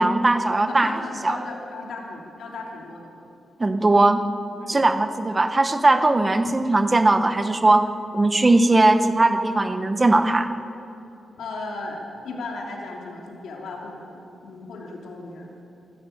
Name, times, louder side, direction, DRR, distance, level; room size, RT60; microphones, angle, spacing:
voice 1, 0.0-1.4 3.6-4.2 4.7-10.5, right 2 dB, 15° right, 8 dB, 1.0 m, -19 dB
voice 2, 0.7-3.1 4.6-4.8 11.4-15.5, left 3 dB, 80° left, -1 dB, 3.1 m, -36 dB
26.5 x 13.0 x 9.1 m, 2.8 s
wide cardioid pair, 175°, 0 cm